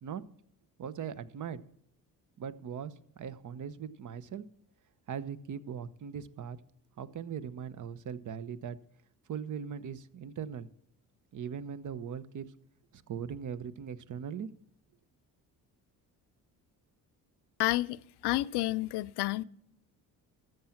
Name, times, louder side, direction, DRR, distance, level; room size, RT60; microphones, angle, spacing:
voice 1, 0.8-1.6 2.4-4.4 5.1-6.6 7.0-8.8 9.3-10.7 11.3-12.5 12.9-14.5, right 7 dB, 50° right, 0.9 m, -40 dB
voice 2, 17.6-19.4, left 17 dB, 75° left, 0.6 m, -30 dB
13.0 x 7.8 x 5.8 m
supercardioid pair, 75°, 40 cm